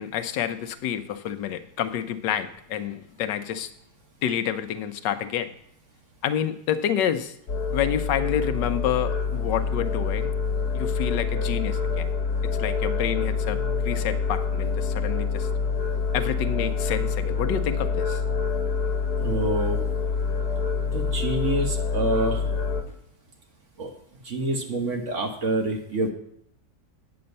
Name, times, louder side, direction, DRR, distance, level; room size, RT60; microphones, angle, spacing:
voice 1, 0.0-3.7 4.2-5.5 6.2-7.3 7.7-10.3 10.7-12.1 12.6-15.5 16.1-18.2, left 9 dB, 85° left, 10 dB, 1.3 m, -28 dB
sound 1, 7.5-22.8, left 5 dB, 65° left, 1.6 m, -26 dB
voice 2, 19.2-19.8 20.9-22.4 23.8-23.9 24.2-26.1, right 2 dB, 45° right, 3 dB, 1.4 m, -27 dB
8.7 x 7.8 x 5.3 m, 0.71 s
omnidirectional pair, 1.9 m